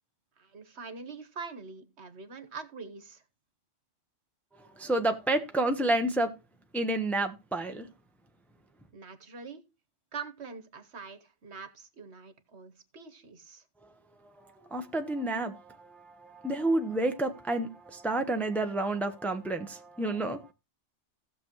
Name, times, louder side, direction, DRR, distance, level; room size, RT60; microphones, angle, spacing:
voice 1, 0.4-3.2 8.9-9.6 10.1-13.6, right 5 dB, 65° right, 1.5 m, -44 dB
voice 2, 4.6-6.3 6.7-7.9 14.2-20.5, right 2 dB, ahead, 0.8 m, -30 dB
16.5 x 6.9 x 3.1 m
omnidirectional pair, 1.2 m